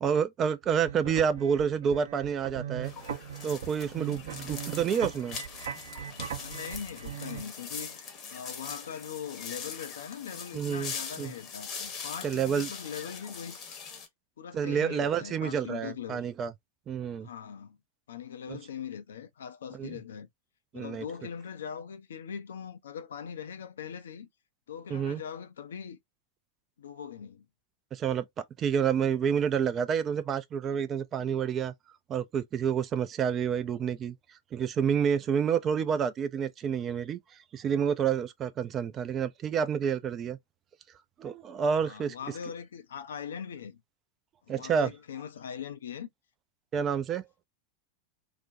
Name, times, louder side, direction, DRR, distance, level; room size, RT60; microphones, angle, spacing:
voice 1, 0.0-2.9 3.4-5.4 10.5-11.3 12.2-12.7 14.5-16.5 16.9-17.3 18.5-18.6 19.8-19.9 20.7-21.0 24.9-25.2 27.9-28.2 28.6-31.7 32.1-34.2 34.5-37.2 37.5-40.4 41.2-42.2 44.5-44.9 46.7-47.2, right 7 dB, 30° right, 0.3 m, -29 dB
sound 1, 0.6-7.4, right 8 dB, 60° right, 0.7 m, -40 dB
sound 2, 2.8-14.1, left 6 dB, 30° left, 0.8 m, -42 dB
voice 2, 4.3-4.7 6.4-8.0 8.3-13.6 14.4-16.2 17.2-17.8 18.1-20.3 20.7-24.3 24.7-26.0 26.8-27.5 41.8-43.8 44.5-46.1 46.7-46.9, left 8 dB, 65° left, 0.4 m, -41 dB
2.4 x 2.1 x 2.5 m
figure-of-eight pair, 90°, 0 cm